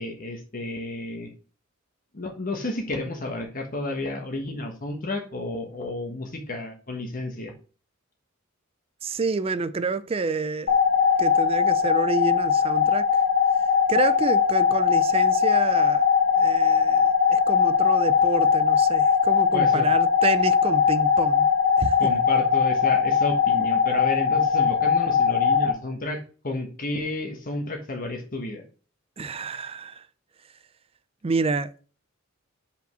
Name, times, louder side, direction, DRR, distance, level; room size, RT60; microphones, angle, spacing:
voice 1, 0.0-1.3 2.1-7.5 19.5-19.9 22.0-28.6, left 2 dB, 40° left, 1.3 m, -31 dB
voice 2, 9.0-10.8 11.2-13.2 13.9-16.0 16.4-21.5 21.8-22.1 29.2-30.1 31.2-31.7, right 3 dB, 30° right, 0.4 m, -29 dB
sound 1, 10.7-25.7, left 7 dB, 90° left, 1.6 m, -20 dB
5.3 x 5.2 x 6.1 m
head